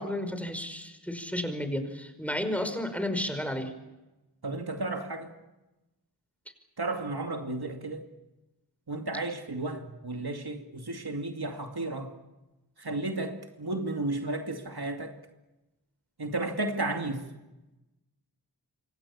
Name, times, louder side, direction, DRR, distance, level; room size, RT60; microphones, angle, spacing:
voice 1, 0.0-3.7, left 1 dB, 5° left, 8 dB, 5.2 m, -32 dB
voice 2, 4.4-5.3 6.8-8.1 8.9-12.1 12.8-15.2 16.2-17.2, right 2 dB, 65° right, 4 dB, 2.6 m, -33 dB
27.5 x 25.0 x 7.2 m, 1.0 s
wide cardioid pair, 45°, 41 cm